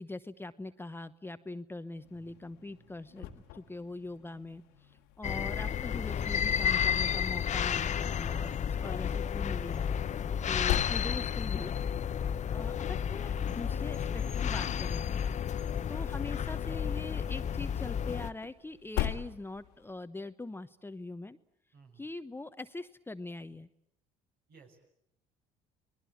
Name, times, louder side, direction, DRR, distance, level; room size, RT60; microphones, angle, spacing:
voice 1, 0.0-9.9 10.5-11.8 12.5-15.2 15.9-21.4 22.0-23.7, left 2 dB, 10° left, 11 dB, 1.0 m, -42 dB
sound 1, 1.9-20.0, left 13 dB, 75° left, 1.8 m, -43 dB
sound 2, 5.2-18.3, left 8 dB, 45° left, 1.0 m, -32 dB
voice 2, 12.1-12.5 15.6-15.8 21.7-22.0 24.5-24.9, right 5 dB, 60° right, 3 dB, 6.5 m, -59 dB
30.0 x 20.5 x 8.8 m, 0.74 s
hypercardioid pair, 65°, 18 cm